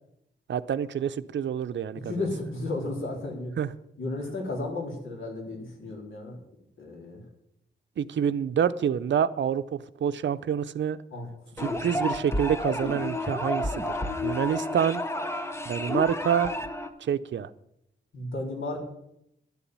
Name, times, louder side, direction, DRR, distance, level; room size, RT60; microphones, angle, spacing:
voice 1, 0.5-2.1 3.6-3.7 8.0-11.0 11.6-13.7 14.2-15.0 15.7-16.5 17.0-17.5, right 8 dB, 70° right, 0.6 m, -27 dB
voice 2, 1.9-3.6 4.0-6.4 6.8-7.2 11.1-11.3 11.6-11.9 18.1-18.8, left 2 dB, 85° left, 3.9 m, -33 dB
sound 1, 11.6-16.9, left 1 dB, 15° left, 0.9 m, -31 dB
12.0 x 7.1 x 9.4 m
wide cardioid pair, 175°, 20 cm